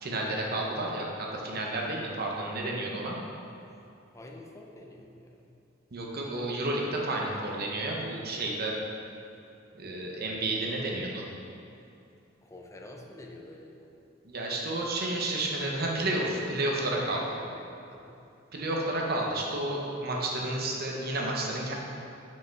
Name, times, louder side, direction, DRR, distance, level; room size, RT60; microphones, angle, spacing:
voice 1, 0.0-3.2 5.9-8.8 9.7-11.2 14.2-17.4 18.5-21.7, right 1 dB, 50° right, -1 dB, 0.9 m, -31 dB
voice 2, 4.1-5.5 12.4-13.9 17.0-18.2, left 1 dB, 15° left, 0 dB, 0.6 m, -47 dB
5.6 x 5.4 x 4.5 m, 2.6 s
head